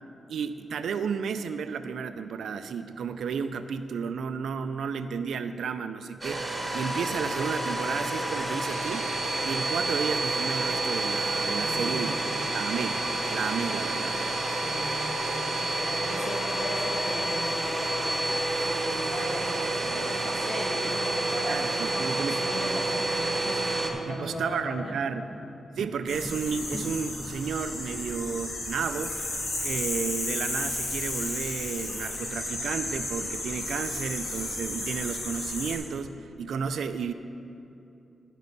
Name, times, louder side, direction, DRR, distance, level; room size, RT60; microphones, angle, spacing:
voice 1, 0.3-6.4 6.7-9.1 9.4-12.2 12.5-13.0 13.3-14.2 21.5-22.4 24.1-25.3 25.8-29.2 29.6-37.1, right 6 dB, 90° right, 10 dB, 0.4 m, -32 dB
Domestic sounds home sounds, 6.2-23.9, right 2 dB, 15° right, 1.2 m, -29 dB
voice 2, 11.6-12.1 14.6-18.2 18.6-24.9, left 1 dB, 70° left, -3 dB, 2.1 m, -37 dB
sound 1, 22.5-27.9, equal, 5° left, 0.6 m, -43 dB
sound 2, 26.1-35.8, left 2 dB, 85° left, 1.9 m, -33 dB
16.5 x 5.4 x 4.0 m, 2.8 s
wide cardioid pair, 105°, 0 cm